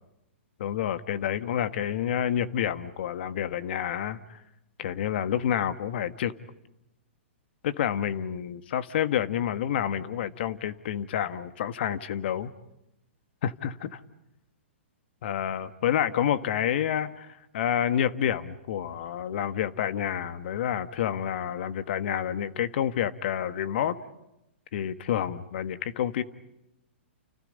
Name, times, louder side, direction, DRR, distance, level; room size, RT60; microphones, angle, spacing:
voice 1, 0.6-4.4 4.8-6.3 7.6-12.5 13.4-14.0 15.2-23.9 24.7-26.2, left 10 dB, 60° left, 12 dB, 1.5 m, -29 dB
29.5 x 29.5 x 5.4 m, 0.87 s
hypercardioid pair, 125°, 7 cm